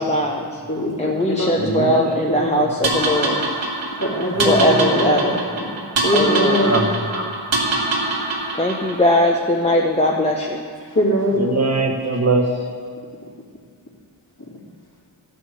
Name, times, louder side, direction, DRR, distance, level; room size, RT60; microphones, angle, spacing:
voice 1, 0.0-0.6 1.0-3.4 4.4-5.4 6.1-6.6 8.5-10.6, left 1 dB, 15° left, -1 dB, 0.7 m, -20 dB
voice 2, 0.7-2.6 4.0-5.3 6.0-6.8 7.1-7.2 10.9-11.4, equal, 40° left, -4 dB, 2.8 m, -22 dB
voice 3, 1.5-2.5 3.0-3.5 4.3-4.8 6.5-7.1 11.3-12.7, right 3 dB, 35° right, 2 dB, 1.1 m, -23 dB
sound 1, 2.8-9.1, right 2 dB, 65° right, 1.7 m, -24 dB
12.0 x 6.3 x 7.8 m, 2.1 s
wide cardioid pair, 110°, 48 cm